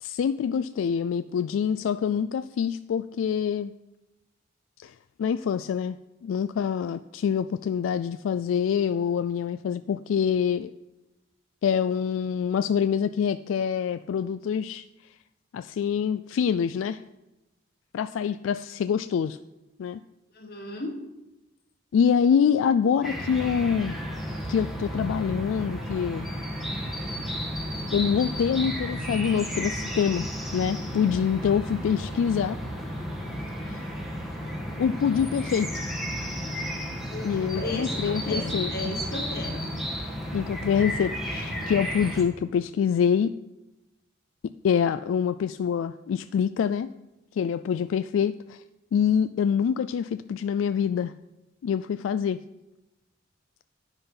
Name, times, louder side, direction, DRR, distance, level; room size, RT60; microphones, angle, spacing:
voice 1, 0.0-3.7 4.8-4.9 5.2-6.0 6.2-10.7 11.6-14.8 15.5-17.0 17.9-19.4 19.8-20.0 21.9-24.0 24.5-26.3 27.9-30.3 30.5-32.6 33.7-33.8 34.8-35.8 37.2-38.9 40.3-43.3 44.6-46.9 47.4-48.6 48.9-51.1 51.6-52.4, left 7 dB, 90° left, 12 dB, 0.3 m, -25 dB
voice 2, 20.3-21.0 37.1-39.7, left 2 dB, 55° left, 1 dB, 1.8 m, -35 dB
sound 1, 23.0-42.2, equal, ahead, 1.5 m, -33 dB
10.0 x 5.5 x 5.6 m, 0.97 s
head